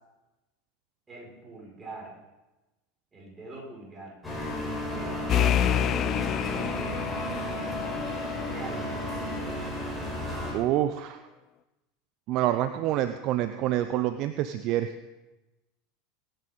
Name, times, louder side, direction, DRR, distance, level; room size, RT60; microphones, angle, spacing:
voice 1, 1.1-2.1 3.1-4.2 4.9-7.1 8.5-8.9, right 2 dB, 20° right, -3 dB, 5.5 m, -43 dB
sound 1, 4.2-10.5, left 1 dB, 10° left, 6.2 m, -33 dB
sound 2, 5.3-8.8, left 10 dB, 40° left, 0.3 m, -28 dB
voice 2, 10.5-11.2 12.3-14.9, right 12 dB, 50° right, 11 dB, 0.6 m, -27 dB
22.5 x 9.7 x 3.8 m, 1.1 s
figure-of-eight pair, 80°, 0 cm